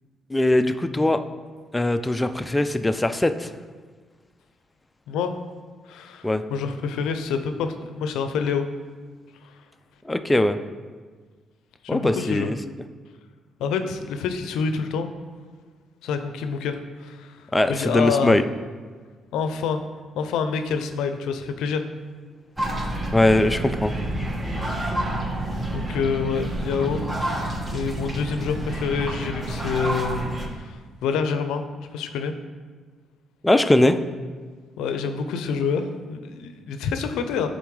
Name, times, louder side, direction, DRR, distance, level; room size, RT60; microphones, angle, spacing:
voice 1, 0.3-1.2 1.7-3.5 6.2-6.4 10.1-10.6 11.9-12.6 17.5-18.4 23.1-23.9 33.4-34.0, left 1 dB, 15° left, 8 dB, 0.3 m, -20 dB
voice 2, 5.1-5.4 5.9-8.7 11.8-12.5 13.6-15.1 16.0-18.4 19.3-19.8 20.2-21.8 25.7-27.0 27.3-31.7 31.9-32.3 34.8-37.5, left 5 dB, 90° left, 8 dB, 0.5 m, -27 dB
sound 1, 22.6-30.5, right 1 dB, 20° right, 1.1 m, -29 dB
10.0 x 3.9 x 3.2 m, 1.5 s
cardioid pair, 90°, 0 cm